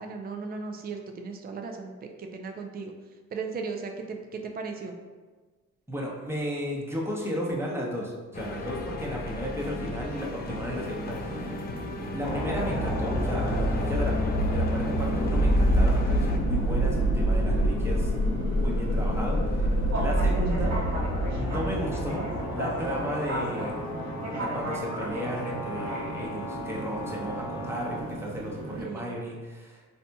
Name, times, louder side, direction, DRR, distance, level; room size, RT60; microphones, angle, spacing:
voice 1, 0.0-2.9 3.3-5.0 28.8-29.1, right 4 dB, 30° right, 4 dB, 0.4 m, -36 dB
voice 2, 5.9-11.5 12.1-14.2 14.5-18.1 18.5-20.7 21.4-22.2 22.5-23.7 24.4-29.8, equal, 10° right, -3 dB, 0.8 m, -34 dB
sound 1, 8.3-16.4, left 2 dB, 30° left, 0.4 m, -37 dB
sound 2, 10.0-28.8, right 1 dB, 60° right, 1.1 m, -37 dB
sound 3, 12.2-28.0, equal, 85° left, 0.7 m, -27 dB
4.1 x 2.8 x 2.2 m, 1.4 s
cardioid pair, 90°, 30 cm